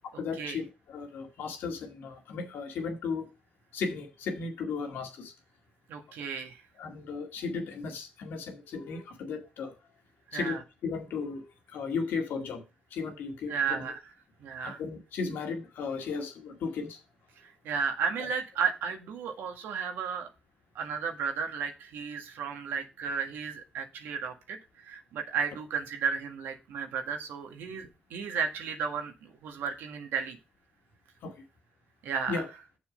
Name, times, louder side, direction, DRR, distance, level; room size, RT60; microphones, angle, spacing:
voice 1, 0.0-3.3 3.7-5.3 6.8-9.7 10.3-12.6 12.9-13.8 14.6-17.0 31.2-31.4 32.3-32.5, left 5 dB, 80° left, 3 dB, 2.0 m, -35 dB
voice 2, 5.9-6.6 10.3-10.6 13.5-14.0 14.4-14.8 17.4-20.3 20.8-24.6 24.8-30.4 32.0-32.4, right 6 dB, 85° right, 5 dB, 1.7 m, -33 dB
7.0 x 6.4 x 5.2 m, 0.28 s
cardioid pair, 65°, 3 cm